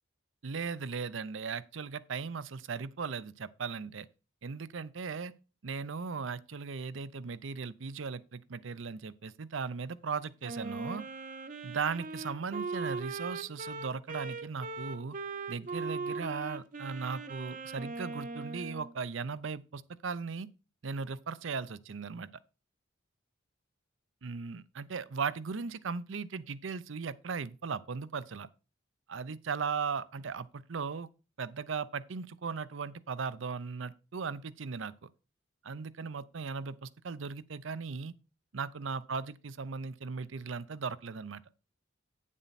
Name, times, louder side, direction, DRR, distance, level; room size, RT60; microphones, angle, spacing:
voice 1, 0.4-4.1 4.4-5.3 5.6-11.0 11.6-15.2 15.5-20.5 20.8-22.3 24.2-28.5 29.1-31.1 31.4-35.1 35.6-38.1 38.5-41.4, right 5 dB, 70° right, 0.6 m, -37 dB
Wind instrument woodwind instrument, 10.4-18.9, right 4 dB, 45° right, 0.8 m, -39 dB
9.3 x 7.3 x 4.1 m
head